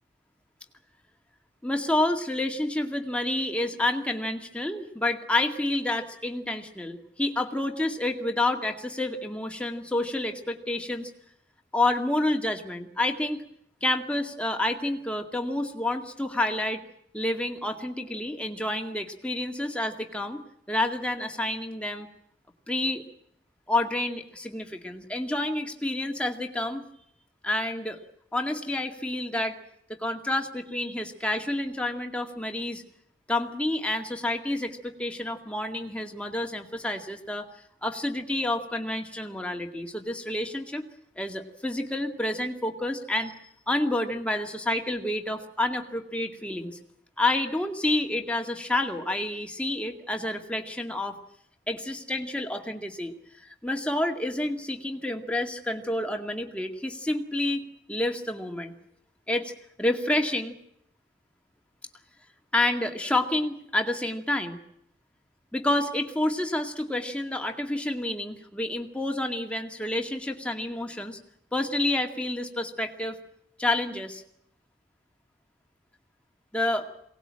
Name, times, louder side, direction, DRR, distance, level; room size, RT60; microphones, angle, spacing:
voice 1, 1.6-11.1 11.7-13.4 13.8-16.8 17.1-22.1 22.7-23.0 23.7-26.8 27.4-28.0 28.3-29.6 29.9-32.8 33.3-37.5 37.8-40.8 41.2-43.3 43.7-46.8 47.2-51.2 51.7-58.7 59.3-59.5 59.8-60.6 62.5-64.6 65.5-71.2 71.5-73.2 73.6-74.2 76.5-76.9, left 1 dB, 5° left, 3 dB, 2.1 m, -29 dB
22.5 x 19.0 x 8.8 m, 0.73 s
head